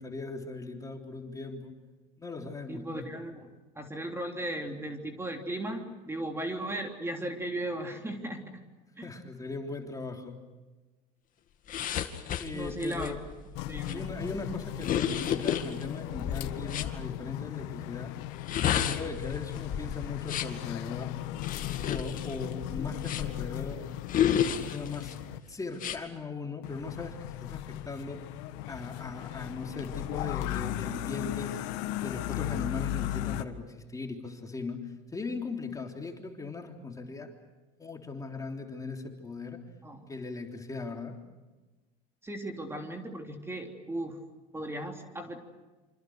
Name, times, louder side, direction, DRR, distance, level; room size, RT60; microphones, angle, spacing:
voice 1, 0.0-1.7 2.2-3.1 9.0-10.4 12.4-13.3 13.9-18.1 18.7-21.1 21.8-23.9 24.5-25.2 25.5-28.2 28.7-31.6 32.0-37.3 37.8-39.6 40.1-41.2, left 3 dB, 20° left, 2 dB, 3.5 m, -39 dB
voice 2, 2.7-3.5 3.7-8.6 9.0-9.1 12.5-13.1 13.7-14.1 39.8-40.0 42.2-44.2 44.5-45.4, right 1 dB, 15° right, 3 dB, 3.3 m, -36 dB
sound 1, 11.7-16.9 18.3-20.6 21.4-23.5 24.1-25.1 25.7-26.0, left 9 dB, 50° left, 2.2 m, -32 dB
sound 2, 13.6-25.4 26.6-33.4, left 14 dB, 75° left, 1.5 m, -37 dB
27.5 x 26.5 x 6.5 m, 1.2 s
supercardioid pair, 95°, 18 cm